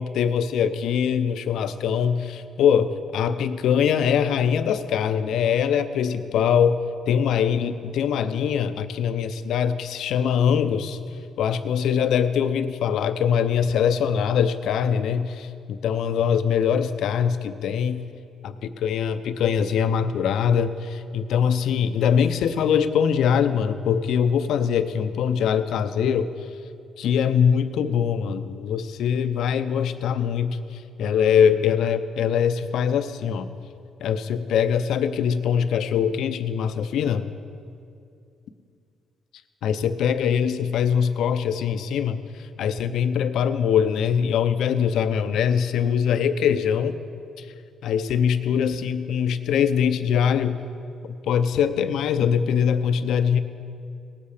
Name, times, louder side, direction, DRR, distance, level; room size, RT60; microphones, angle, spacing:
voice 1, 0.0-11.0 11.4-18.1 18.4-26.3 27.0-33.5 34.0-37.2 39.6-47.0 47.4-47.5 47.8-50.6 51.3-53.4, left 7 dB, 80° left, 11 dB, 0.6 m, -22 dB
18.0 x 8.4 x 5.0 m, 2.5 s
cardioid pair, 90°, 0 cm